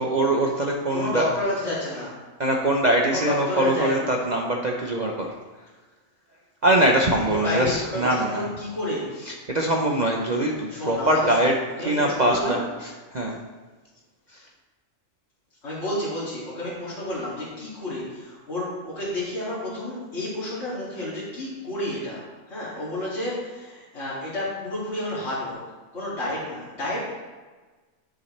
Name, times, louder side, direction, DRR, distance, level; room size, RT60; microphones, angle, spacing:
voice 1, 0.0-1.3 2.4-5.7 6.6-8.5 9.3-11.5 11.8-13.4 14.3-14.5, right 1 dB, 40° right, 0 dB, 0.8 m, -23 dB
voice 2, 0.9-2.2 3.1-4.1 7.2-9.1 10.7-11.5 11.8-12.6 15.6-22.2 22.5-25.6 25.9-27.2, left 1 dB, 55° left, -10 dB, 2.7 m, -30 dB
10.5 x 6.5 x 3.2 m, 1.3 s
omnidirectional pair, 1.4 m